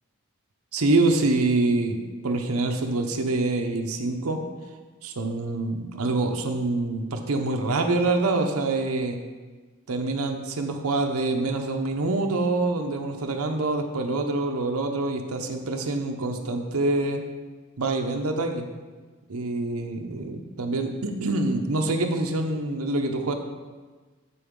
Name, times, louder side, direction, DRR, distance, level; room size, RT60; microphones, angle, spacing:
voice 1, 0.7-4.4 5.0-9.2 9.9-17.2 17.8-18.7 19.3-23.3, right 2 dB, 85° right, 4 dB, 0.8 m, -26 dB
7.8 x 6.9 x 3.7 m, 1.3 s
head